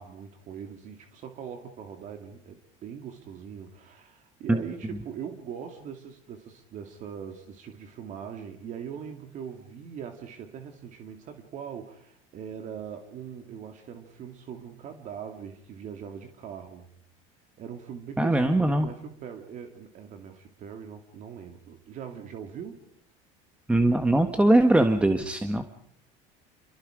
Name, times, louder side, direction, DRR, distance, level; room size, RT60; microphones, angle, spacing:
voice 1, 0.0-16.9 17.6-22.8, right 7 dB, 50° right, 5 dB, 2.4 m, -41 dB
voice 2, 18.2-18.9 23.7-25.6, right 1 dB, 5° right, 6 dB, 1.4 m, -21 dB
28.0 x 22.5 x 5.0 m, 0.69 s
supercardioid pair, 120°, 16 cm